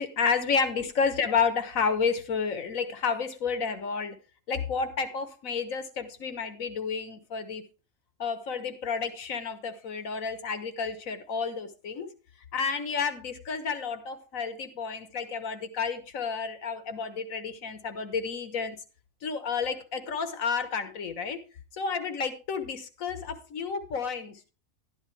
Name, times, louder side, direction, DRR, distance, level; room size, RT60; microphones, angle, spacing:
voice 1, 0.0-4.2 4.5-7.6 8.2-12.1 12.5-18.8 19.2-21.4 21.7-24.5, left 5 dB, 85° left, 10 dB, 1.7 m, -31 dB
12.0 x 10.5 x 3.3 m, 0.33 s
omnidirectional pair, 1.4 m